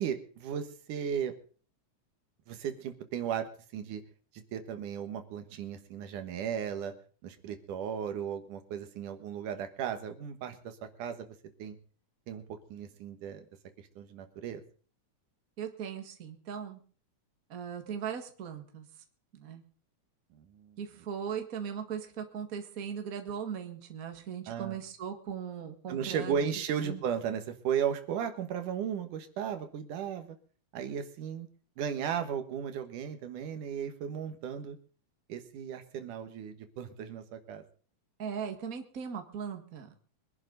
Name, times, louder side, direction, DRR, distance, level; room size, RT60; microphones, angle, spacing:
voice 1, 0.0-1.3 2.5-4.0 4.5-6.9 7.2-11.3 11.6-11.8 12.3-12.4 12.7-13.4 14.0-14.6 20.3-20.8 24.5-24.8 25.9-30.4 30.7-31.5 31.8-34.8 35.3-37.6, right 8 dB, 85° right, 8 dB, 2.9 m, -35 dB
voice 2, 15.6-16.8 17.5-18.9 19.3-19.6 20.8-26.5 26.8-27.0 38.2-40.0, right 7 dB, 35° right, 6 dB, 1.8 m, -39 dB
24.0 x 11.0 x 4.0 m, 0.43 s
omnidirectional pair, 3.5 m